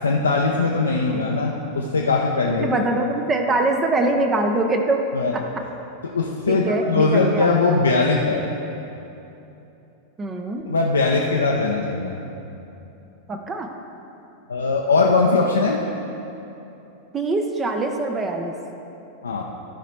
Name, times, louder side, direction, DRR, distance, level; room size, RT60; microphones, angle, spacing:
voice 1, 0.0-2.7 5.1-5.4 6.0-8.4 10.7-12.2 14.5-15.8 19.2-19.4, left 3 dB, 75° left, -1 dB, 0.6 m, -20 dB
voice 2, 2.5-5.1 5.3-5.4 6.5-7.5 10.2-10.6 13.3-13.7 17.1-18.5, right 2 dB, 20° right, 4 dB, 0.6 m, -23 dB
12.5 x 5.0 x 4.4 m, 2.9 s
figure-of-eight pair, 90°, 0 cm